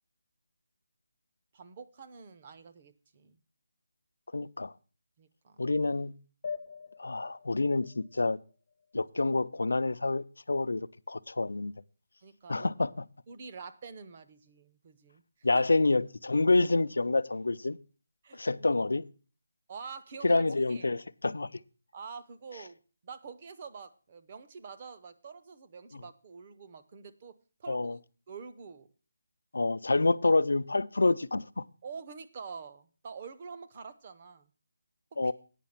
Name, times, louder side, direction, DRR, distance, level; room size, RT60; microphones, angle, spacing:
voice 1, 1.5-3.4 5.2-5.6 12.2-12.7 13.3-15.7 18.2-18.4 19.7-20.4 20.7-20.9 21.9-28.0 28.3-28.9 31.8-34.5 35.2-35.3, right 5 dB, 20° right, 0.6 m, -46 dB
voice 2, 4.3-4.7 5.6-6.2 7.0-8.4 8.9-11.7 12.5-13.1 15.4-17.8 18.3-19.1 20.2-21.6 25.9-26.0 27.7-28.0 29.5-31.6 35.2-35.3, left 3 dB, 90° left, 0.5 m, -28 dB
sound 1, 6.4-9.4, left 6 dB, 30° left, 0.6 m, -44 dB
9.1 x 5.8 x 7.1 m
hypercardioid pair, 175°, 0 cm